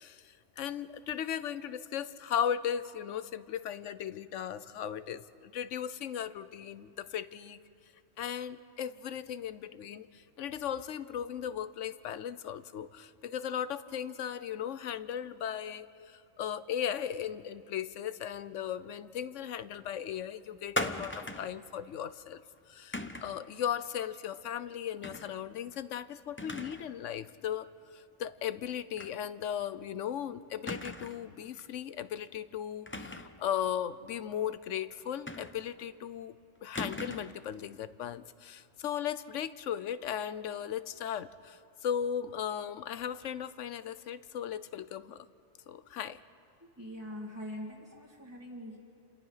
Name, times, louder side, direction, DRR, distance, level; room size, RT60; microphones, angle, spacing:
voice 1, 0.0-7.6 8.2-22.4 22.7-27.7 27.9-36.3 36.6-45.3 45.7-46.2, left 9 dB, 80° left, 14 dB, 1.1 m, -37 dB
sound 1, 20.8-21.6 22.9-23.4 25.0-25.3 25.7-25.8 26.4-26.9 27.2-27.3 29.0-29.2 29.5-29.6 30.7-31.3 32.9-33.4 35.3-35.8 36.7-37.4, left 1 dB, 10° left, 0.7 m, -38 dB
voice 2, 46.8-48.8, left 1 dB, 10° right, -5 dB, 1.9 m, -43 dB
29.0 x 27.0 x 5.7 m, 2.6 s
omnidirectional pair, 1.2 m